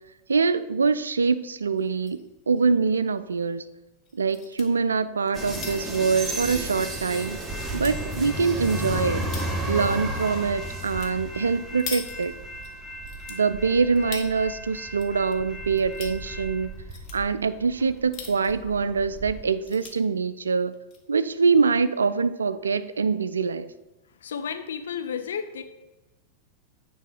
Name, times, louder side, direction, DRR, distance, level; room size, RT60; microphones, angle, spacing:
voice 1, 0.3-2.2 2.5-3.6 4.1-7.4 7.7-9.2 9.7-12.3 13.3-16.7 17.1-20.7 21.1-23.7, right 5 dB, 75° right, 14 dB, 0.3 m, -24 dB
sound 1, 1.8-2.2 2.6-2.7 2.9-3.0 4.0-4.7 5.2-7.0 7.4-8.0 8.6-9.6 10.8-11.1 11.4-12.7 13.0-14.3 14.7-15.3 15.6-16.2 16.7-17.2 17.9-18.6 19.1-19.2 19.5-19.9 20.7-21.0, left 6 dB, 35° left, 1.2 m, -41 dB
sound 2, 5.3-19.4, right 1 dB, 10° right, 1.3 m, -33 dB
voice 2, 24.1-25.6, left 7 dB, 65° left, 8 dB, 0.6 m, -32 dB
9.4 x 3.6 x 5.1 m, 1.0 s
figure-of-eight pair, 90°, 0 cm